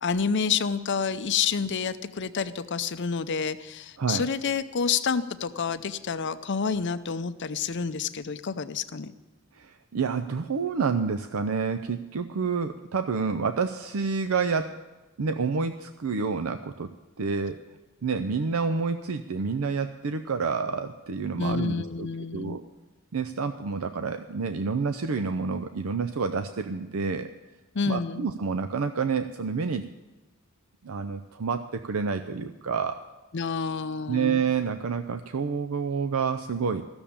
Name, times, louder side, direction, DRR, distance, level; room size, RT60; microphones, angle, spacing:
voice 1, 0.0-9.1 21.4-22.6 27.7-28.2 33.3-34.4, left 5 dB, 55° left, 12 dB, 0.6 m, -29 dB
voice 2, 4.0-4.3 9.5-14.7 15.2-16.9 17.2-17.6 18.0-22.6 23.1-27.3 27.9-29.8 30.8-33.1 34.1-36.8, right 5 dB, 85° right, 8 dB, 0.6 m, -28 dB
14.5 x 7.0 x 8.6 m, 1.1 s
head